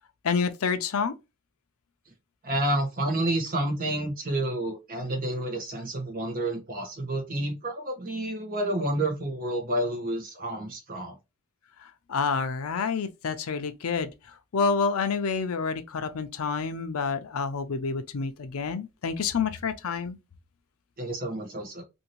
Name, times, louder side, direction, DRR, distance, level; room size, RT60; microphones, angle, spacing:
voice 1, 0.2-1.1 12.1-14.1 14.5-20.2, left 5 dB, 75° left, 0.5 m, -28 dB
voice 2, 2.4-11.2 21.0-21.8, right 1 dB, 40° right, 1.0 m, -29 dB
2.7 x 2.7 x 2.9 m
head